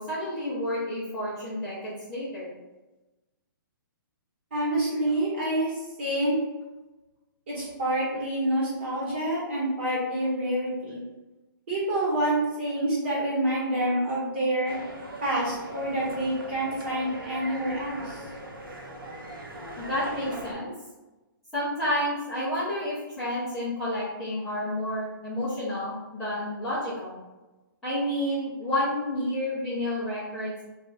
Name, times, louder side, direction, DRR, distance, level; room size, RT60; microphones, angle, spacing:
voice 1, 0.0-2.5 19.8-20.7 21.5-27.2 27.8-30.5, left 1 dB, 5° left, -16 dB, 0.5 m, -30 dB
voice 2, 4.5-6.4 7.5-11.0 11.7-14.8 15.2-18.2, right 1 dB, 30° right, -6 dB, 1.2 m, -27 dB
sound 1, 14.7-20.5, right 1 dB, 80° right, 1.0 m, -40 dB
3.2 x 2.4 x 3.9 m, 1.1 s
hypercardioid pair, 175°, 12 cm